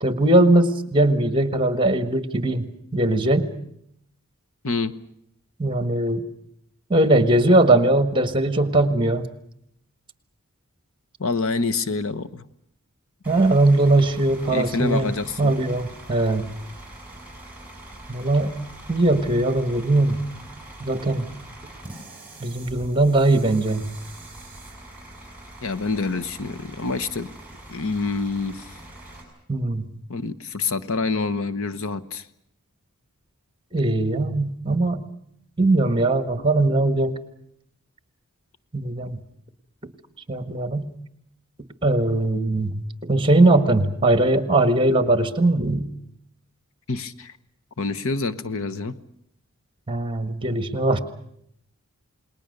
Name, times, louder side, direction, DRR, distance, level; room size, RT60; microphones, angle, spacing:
voice 1, 0.0-3.5 5.6-6.2 6.9-9.3 13.2-15.1 15.4-16.5 18.1-18.5 18.9-20.2 20.8-21.3 22.4-23.9 29.5-29.9 33.7-35.1 35.6-37.2 38.7-39.2 40.3-40.9 41.8-45.9 49.9-51.0, right 2 dB, 25° right, 10 dB, 1.5 m, -20 dB
voice 2, 11.2-12.4 14.5-15.6 25.6-27.3 27.7-28.7 30.1-32.3 46.9-47.3 47.8-49.0, left 3 dB, 65° left, 10 dB, 1.1 m, -27 dB
Bus / Idling, 13.2-29.2, right 1 dB, 5° right, 7.0 m, -43 dB
28.5 x 20.0 x 6.7 m, 0.73 s
head